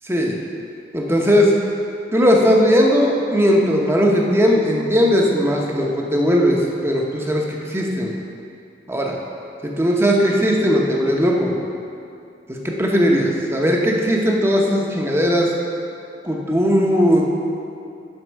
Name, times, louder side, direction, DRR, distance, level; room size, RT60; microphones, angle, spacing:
voice 1, 0.9-1.5 2.1-8.1 8.9-9.2 9.6-11.5 12.5-15.5 16.2-17.2, equal, 15° right, -1 dB, 0.9 m, -18 dB
8.0 x 5.2 x 6.3 m, 2.5 s
head